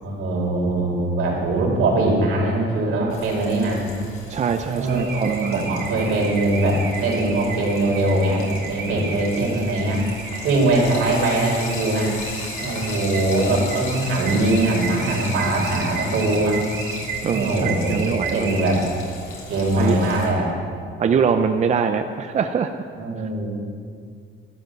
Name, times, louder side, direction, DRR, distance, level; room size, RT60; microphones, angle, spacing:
voice 1, 0.0-3.8 4.7-10.0 10.4-12.1 12.6-16.6 17.3-18.8 19.5-20.5 23.0-23.5, right 2 dB, 75° right, -2 dB, 4.4 m, -21 dB
Frying (food), 3.1-20.3, left 3 dB, 80° left, 3.4 m, -37 dB
voice 2, 4.3-5.7 17.2-18.4 19.8-20.0 21.0-22.8, right 6 dB, 35° right, 7 dB, 0.6 m, -23 dB
Car / Alarm, 4.9-19.0, right 5 dB, 55° right, 2.2 m, -34 dB
12.5 x 11.0 x 7.7 m, 2.2 s
cardioid pair, 135°, 21 cm